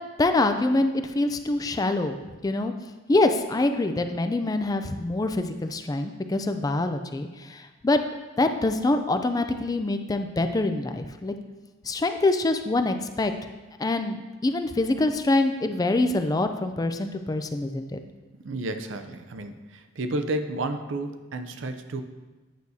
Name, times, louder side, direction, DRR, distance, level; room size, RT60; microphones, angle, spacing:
voice 1, 0.2-2.2 2.4-2.7 3.1-8.0 8.4-11.3 11.9-13.3 13.8-18.0, left 2 dB, 20° left, 7 dB, 0.3 m, -25 dB
voice 2, 18.4-22.0, right 2 dB, 75° right, 8 dB, 0.6 m, -31 dB
9.1 x 6.4 x 2.7 m, 1.2 s
head